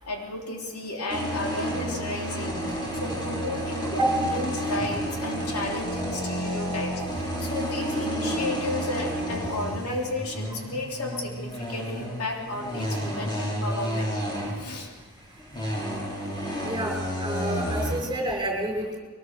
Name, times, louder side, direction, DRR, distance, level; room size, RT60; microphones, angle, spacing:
voice 1, 0.0-14.1 14.5-14.9, left 2 dB, 85° left, 0 dB, 3.5 m, -33 dB
sound 1, 1.1-15.0 15.3-18.0, equal, 20° left, 5.7 m, -31 dB
voice 2, 17.2-19.0, right 1 dB, 20° right, -1 dB, 5.9 m, -28 dB
22.5 x 19.5 x 6.8 m, 1.5 s
head